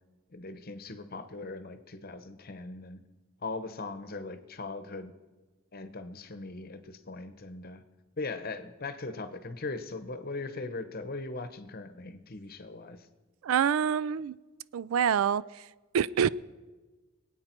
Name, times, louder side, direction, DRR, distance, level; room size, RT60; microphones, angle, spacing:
voice 1, 0.3-3.0 3.4-5.1 5.7-7.8 8.2-13.1, left 3 dB, 45° left, 10 dB, 0.9 m, -39 dB
voice 2, 13.4-14.4 14.7-15.4 15.9-16.3, right 8 dB, 75° right, 20 dB, 0.4 m, -26 dB
23.0 x 8.8 x 4.5 m, 1.3 s
head